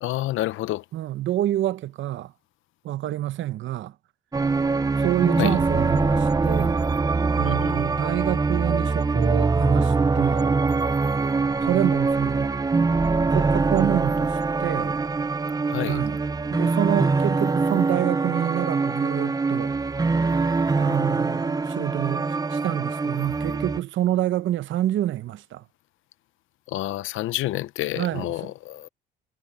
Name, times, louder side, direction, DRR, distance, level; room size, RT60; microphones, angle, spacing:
voice 1, 0.0-0.8 5.4-5.5 7.4-7.8 15.7-16.0 26.7-28.9, left 15 dB, 80° left, 0.7 m, -29 dB
voice 2, 0.9-2.3 2.8-3.9 5.0-6.8 7.3-10.5 11.6-12.5 13.3-15.0 15.9-16.2 16.5-19.7 20.8-25.6 28.0-28.3, right 13 dB, 75° right, 0.8 m, -27 dB
sound 1, 4.3-23.8, right 4 dB, 20° right, 0.6 m, -23 dB
cardioid pair, 90°, 20 cm